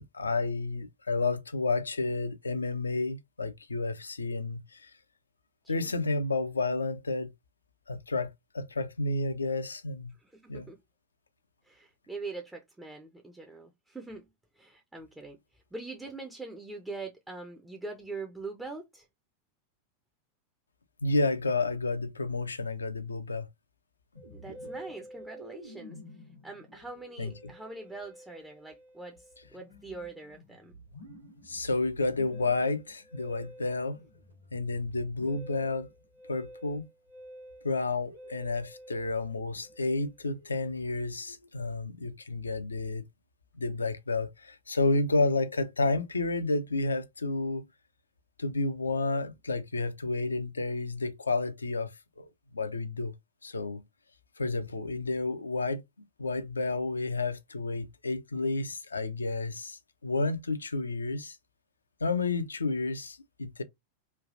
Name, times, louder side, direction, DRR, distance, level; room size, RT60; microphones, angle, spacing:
voice 1, 0.0-4.9 5.7-7.3 7.9-10.1 10.5-10.7 21.0-23.5 27.2-27.5 31.5-34.0 34.5-35.9 36.3-36.9 37.6-43.0 43.5-47.6 48.4-51.9 52.2-52.3 52.5-53.1 53.4-53.8 54.4-55.8 56.2-61.4 62.0-63.6, left 3 dB, 75° left, 0.4 m, -31 dB
voice 2, 10.2-10.8 11.6-14.3 14.6-15.4 15.7-19.1 24.3-26.0 26.4-30.7, right 3 dB, 5° right, 0.4 m, -43 dB
Musical instrument, 24.1-41.7, equal, 90° right, 1.1 m, -50 dB
3.2 x 2.3 x 2.4 m
figure-of-eight pair, 90°, 0 cm